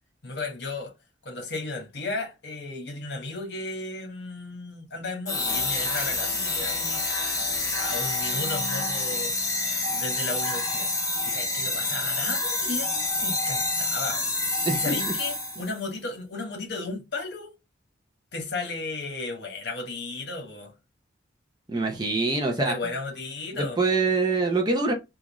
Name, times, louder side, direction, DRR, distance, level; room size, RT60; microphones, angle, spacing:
voice 1, 0.2-0.9 1.2-7.0 7.7-9.3 9.9-10.9 11.2-14.3 14.7-17.5 18.3-20.7 22.5-23.8, left 3 dB, 65° left, 1.2 m, -34 dB
sound 1, 5.3-15.8, left 2 dB, 15° left, 0.9 m, -28 dB
voice 2, 21.7-22.7 23.6-24.9, right 3 dB, 20° right, 0.6 m, -24 dB
3.6 x 2.5 x 3.0 m
head